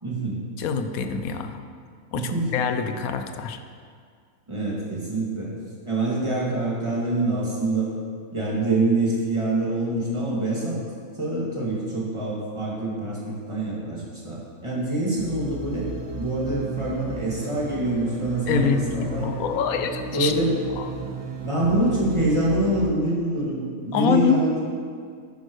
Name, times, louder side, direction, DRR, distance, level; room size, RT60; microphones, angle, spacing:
voice 1, 0.0-0.4 2.1-2.5 4.5-5.5 5.9-7.9 8.3-15.9 16.1-19.3 20.1-20.5 21.4-24.6, right 2 dB, 20° right, -6 dB, 2.2 m, -25 dB
voice 2, 0.6-1.6 2.1-3.6 18.5-20.3 20.8-20.9 23.9-24.4, left 6 dB, 70° left, 7 dB, 1.1 m, -25 dB
sound 1, 15.2-22.9, right 4 dB, 45° right, 0.3 m, -35 dB
11.0 x 10.5 x 3.2 m, 2.1 s
omnidirectional pair, 1.6 m